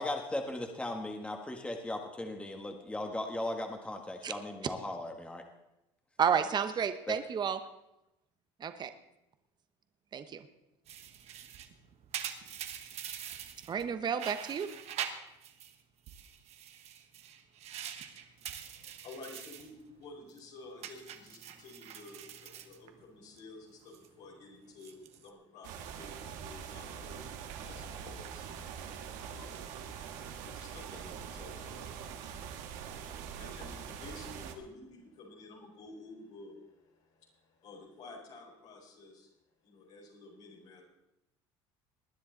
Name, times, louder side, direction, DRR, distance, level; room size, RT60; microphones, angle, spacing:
voice 1, 0.0-5.4 7.1-7.2, left 1 dB, 10° left, 4 dB, 1.6 m, -37 dB
voice 2, 6.2-7.6 8.6-8.9 10.1-10.4 13.7-14.7, right 7 dB, 35° right, 10 dB, 1.0 m, -31 dB
sound 1, 10.9-13.9 14.1-15.7 16.1-19.7 20.0-20.4 20.8-23.4 23.7-24.1 24.7-25.3, right 9 dB, 55° right, 1.4 m, -44 dB
voice 3, 18.6-39.3 39.6-40.8, left 2 dB, 65° left, -4 dB, 4.5 m, -52 dB
sound 2, 25.6-34.5, right 7 dB, 75° right, 1.6 m, -43 dB
20.0 x 10.0 x 4.0 m, 0.89 s
supercardioid pair, 105°, 13 cm